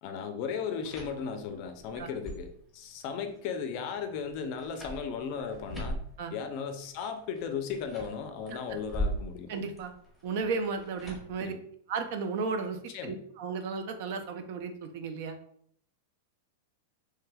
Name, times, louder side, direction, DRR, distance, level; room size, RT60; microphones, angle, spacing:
voice 1, 0.0-2.5 2.7-6.0 6.3-9.5 11.4-11.6 12.9-13.2, left 6 dB, 45° left, 7 dB, 0.4 m, -36 dB
sound 1, 0.7-11.4, equal, 5° right, 0.9 m, -41 dB
voice 2, 9.5-9.9 10.2-11.5 11.9-15.4, right 4 dB, 55° right, 7 dB, 0.4 m, -34 dB
3.3 x 3.1 x 2.2 m, 0.65 s
supercardioid pair, 155°, 0 cm